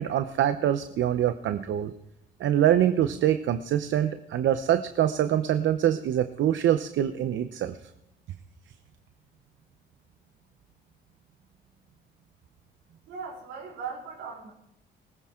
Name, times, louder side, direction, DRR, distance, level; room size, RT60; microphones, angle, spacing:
voice 1, 0.0-1.9 2.4-7.8, right 11 dB, 70° right, 10 dB, 0.7 m, -24 dB
voice 2, 13.1-14.5, right 5 dB, 90° right, 0 dB, 5.1 m, -38 dB
19.5 x 15.0 x 3.7 m, 0.81 s
cardioid pair, 90°, 20 cm